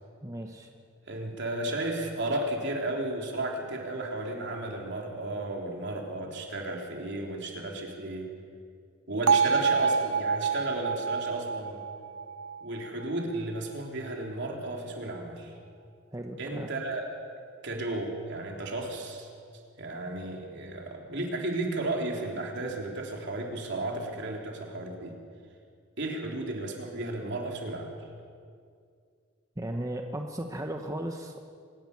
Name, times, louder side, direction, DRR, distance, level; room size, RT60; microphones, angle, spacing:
voice 1, 0.2-0.7 16.1-16.7 29.6-31.4, right 1 dB, 15° right, 3 dB, 1.0 m, -36 dB
voice 2, 1.1-8.3 9.1-11.8 12.6-15.5 16.4-17.0 17.6-19.3 19.8-25.1 26.0-27.9, right 2 dB, 60° right, 1 dB, 3.3 m, -33 dB
Bell, 9.3-13.3, right 6 dB, 90° right, 0.5 m, -27 dB
24.5 x 11.0 x 9.8 m, 2.2 s
head